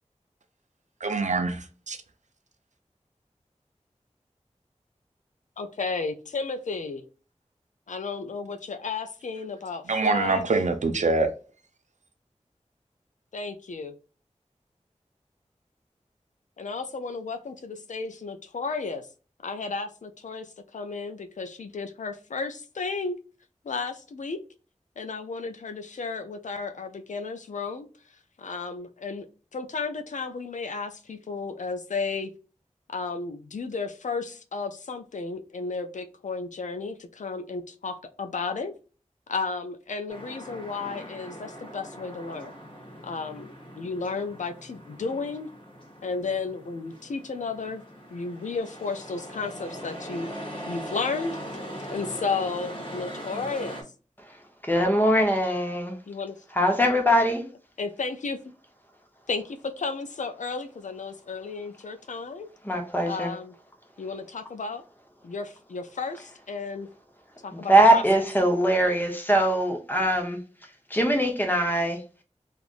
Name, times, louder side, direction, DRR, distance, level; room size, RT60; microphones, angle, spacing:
voice 1, 1.0-2.0 9.9-11.3, right 3 dB, 70° right, 0.5 m, -25 dB
voice 2, 5.6-7.1 7.9-10.5 13.3-14.0 16.6-19.1 19.4-23.1 23.6-24.4 25.0-27.9 28.4-29.3 29.5-32.3 32.9-38.7 39.3-42.5 43.0-45.5 46.0-47.8 48.1-50.3 50.7-51.4 51.9-53.8 56.1-56.4 57.8-58.4 59.3-62.5 63.1-63.5 64.0-64.8 65.2-66.9 67.4-68.2, left 4 dB, 80° left, 0.4 m, -33 dB
sound 1, 40.1-53.8, equal, 40° left, 1.2 m, -41 dB
voice 3, 54.6-56.0 56.6-57.4 62.6-63.3 67.5-70.4 70.9-72.0, right 1 dB, 15° left, 0.9 m, -22 dB
3.3 x 2.4 x 2.5 m
wide cardioid pair, 50°, 13 cm